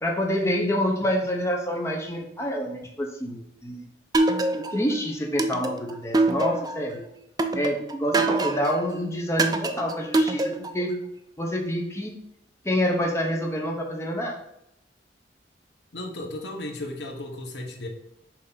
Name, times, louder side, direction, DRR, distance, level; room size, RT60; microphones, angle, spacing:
voice 1, 0.0-3.8 4.6-7.0 7.5-11.0 11.4-12.2 12.6-14.4, equal, 15° left, 0 dB, 0.8 m, -27 dB
sound 1, 4.1-4.9 5.4-6.8 7.4-8.8 9.4-10.8, right 2 dB, 20° right, 0.4 m, -24 dB
voice 2, 15.9-17.9, left 1 dB, 70° left, 2 dB, 1.1 m, -35 dB
6.5 x 2.8 x 5.6 m, 0.79 s
head